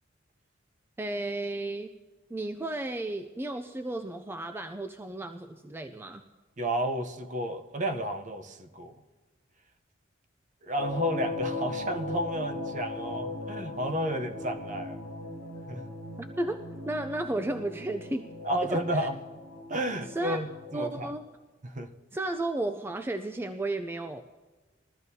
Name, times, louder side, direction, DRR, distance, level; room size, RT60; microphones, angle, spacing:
voice 1, 1.0-1.9 2.3-6.2 16.2-18.3 18.6-19.1 20.1-20.4 20.7-21.2 22.1-24.2, right 2 dB, 10° right, 0.3 m, -33 dB
voice 2, 6.6-9.0 10.6-15.0 15.7-15.8 18.4-19.2 19.7-21.1 21.6-21.9, right 1 dB, 40° right, 0.7 m, -32 dB
sound 1, 10.8-21.0, left 2 dB, 85° right, 2.2 m, -38 dB
20.5 x 13.5 x 2.8 m
head